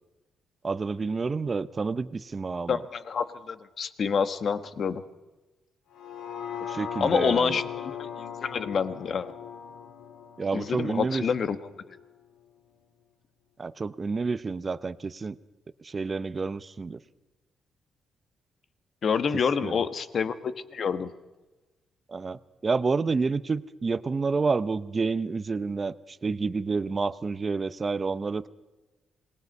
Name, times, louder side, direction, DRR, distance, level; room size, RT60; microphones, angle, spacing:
voice 1, 0.6-2.8 6.6-7.6 10.4-11.2 13.6-15.4 15.8-17.0 19.6-19.8 22.1-28.5, right 4 dB, 30° right, 14 dB, 0.7 m, -29 dB
voice 2, 2.7-5.0 7.0-9.3 10.5-11.6 19.0-21.1, left 6 dB, 50° left, 11 dB, 1.3 m, -27 dB
sound 1, 5.9-12.1 12.5-12.6, left 8 dB, 80° left, 2.2 m, -39 dB
27.0 x 20.0 x 5.4 m, 1.2 s
cardioid pair, 130°, 0 cm